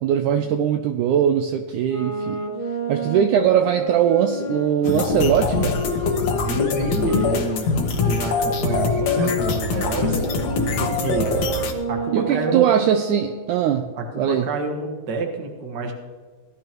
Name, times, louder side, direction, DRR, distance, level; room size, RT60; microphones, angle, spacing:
voice 1, 0.0-2.4 2.9-5.8 12.1-13.9 14.2-14.5, right 9 dB, 85° right, 7 dB, 1.8 m, -20 dB
sound 1, 1.7-7.4 7.9-13.5, right 1 dB, 15° right, 1.9 m, -30 dB
sound 2, 4.8-11.7, left 4 dB, 60° left, 2.2 m, -23 dB
voice 2, 6.3-7.7 8.0-11.3 11.9-12.7 14.1-15.9, right 3 dB, 50° right, 3 dB, 1.4 m, -28 dB
17.5 x 12.5 x 3.0 m, 1.4 s
omnidirectional pair, 4.1 m